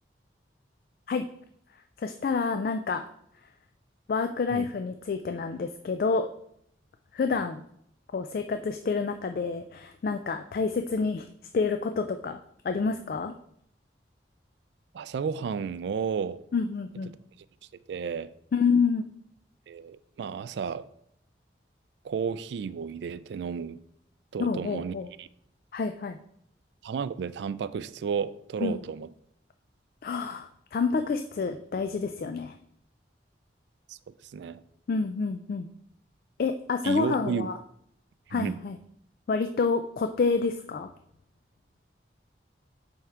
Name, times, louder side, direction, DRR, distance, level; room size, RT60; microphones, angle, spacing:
voice 1, 2.0-3.0 4.1-6.3 7.1-7.6 8.1-11.3 11.5-12.4 12.6-13.3 16.5-17.1 18.5-19.1 24.4-25.1 25.7-26.2 28.6-28.8 30.0-32.6 34.9-35.7 36.4-37.5 38.3-38.8 39.3-40.9, left 4 dB, 50° left, 0.3 m, -28 dB
voice 2, 14.9-16.4 17.9-18.3 19.7-20.9 22.0-23.8 24.3-25.3 26.8-29.1 33.9-34.0 34.2-34.6 36.8-37.5 38.3-38.6, right 6 dB, 70° right, 0.3 m, -32 dB
7.8 x 3.6 x 4.5 m
head